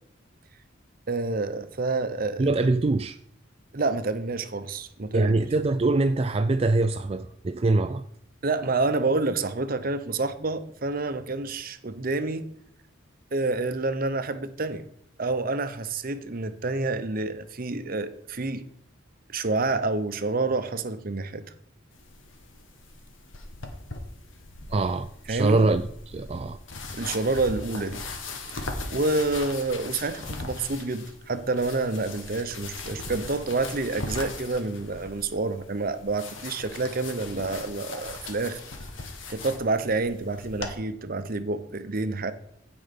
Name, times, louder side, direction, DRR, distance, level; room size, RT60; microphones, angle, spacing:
voice 1, 1.1-2.5 3.7-5.4 8.4-12.5 13.3-14.9 15.2-18.7 19.3-21.5 25.3-25.6 26.9-28.0 28.5-38.6 39.3-42.3, right 3 dB, 45° right, 0.8 m, -28 dB
voice 2, 2.4-3.2 5.1-8.0 24.7-26.6, right 2 dB, 30° right, 0.4 m, -24 dB
sound 1, 21.9-40.7, left 3 dB, 85° left, 1.8 m, -39 dB
15.5 x 5.3 x 5.3 m
head